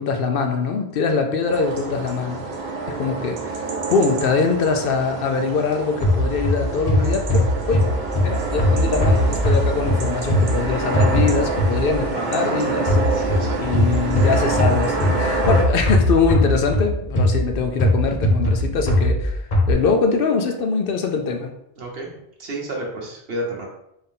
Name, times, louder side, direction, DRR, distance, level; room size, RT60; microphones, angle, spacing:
voice 1, 0.0-2.4 2.9-3.6 3.9-7.9 8.2-21.5, left 5 dB, 65° left, 5 dB, 0.7 m, -23 dB
sound 1, 1.5-15.7, right 3 dB, 90° right, 1.0 m, -27 dB
sound 2, 6.0-12.1 12.9-19.7, left 1 dB, 50° left, 1.2 m, -20 dB
voice 2, 12.1-12.6 13.1-13.6 21.8-22.1 22.4-23.7, right 1 dB, 70° right, -1 dB, 1.2 m, -30 dB
3.8 x 2.6 x 3.6 m, 0.80 s
omnidirectional pair, 1.0 m